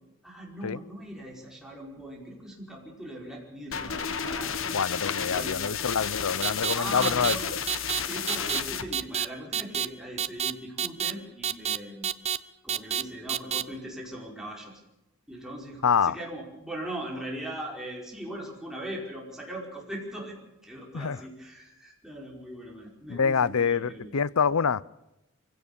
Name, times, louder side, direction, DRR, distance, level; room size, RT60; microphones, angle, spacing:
voice 1, 0.2-4.5 5.2-5.7 6.7-7.5 8.0-12.2 12.6-14.7 15.3-20.4 20.6-24.1, right 1 dB, ahead, -2 dB, 5.1 m, -39 dB
sound 1, 3.7-8.8, left 7 dB, 65° left, 1.4 m, -32 dB
voice 2, 4.7-7.3 15.8-16.2 20.9-21.2 23.1-24.8, left 6 dB, 85° left, 20 dB, 0.6 m, -26 dB
sound 2, 6.4-6.7 7.0-7.3 7.7-8.0 8.3-8.6 8.9-9.2 9.5-9.9 10.2-10.5 10.8-11.1 11.4-11.8 12.0-12.4 12.7-13.0 13.3-13.6, right 9 dB, 30° right, 0.6 m, -28 dB
24.0 x 16.5 x 6.9 m, 0.93 s
head